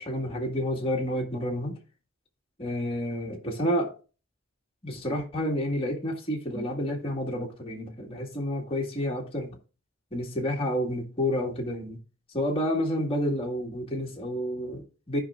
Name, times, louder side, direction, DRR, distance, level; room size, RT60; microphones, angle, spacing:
voice 1, 0.0-1.8 2.6-3.9 4.8-9.6 10.1-12.0 12.3-15.2, equal, 30° left, 1.8 m, -29 dB
14.5 x 5.4 x 2.4 m
head